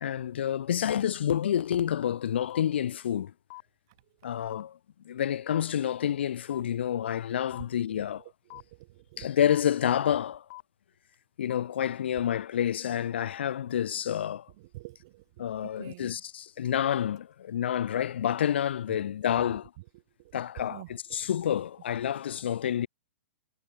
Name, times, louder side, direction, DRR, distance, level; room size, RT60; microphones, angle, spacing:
voice 1, 0.0-3.3 4.2-4.8 5.0-8.2 9.2-10.4 11.4-14.5 15.4-19.7 20.3-22.9, left 10 dB, 65° left, 0.3 m, -29 dB
sound 1, 2.5-2.6 3.5-3.6 4.5-4.6 5.5-5.6 6.5-6.6 7.5-7.6 8.5-8.6 9.5-9.6 10.5-10.6 11.5-11.6, left 25 dB, 25° left, 1.0 m, -43 dB
voice 2, 8.5-9.3 14.7-15.2 15.8-16.1 20.6-20.9 21.2-21.3, right 20 dB, 25° right, 0.3 m, -46 dB
hypercardioid pair, 180°, 6 cm